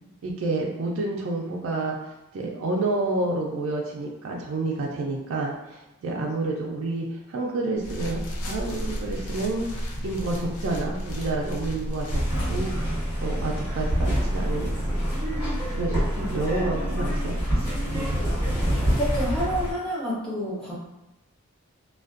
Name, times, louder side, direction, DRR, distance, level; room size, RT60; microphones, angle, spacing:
voice 1, 0.2-2.0 2.3-12.2 12.5-13.0 13.2-15.0 15.7-17.4 17.9-18.2, right 2 dB, 60° right, -1 dB, 0.3 m, -29 dB
sound 1, 7.8-12.9, equal, 90° left, 0.5 m, -33 dB
sound 2, 12.1-19.7, equal, 65° left, 1.5 m, -26 dB
voice 2, 18.8-20.8, equal, 5° left, -7 dB, 0.5 m, -29 dB
2.4 x 2.2 x 2.4 m, 0.96 s
head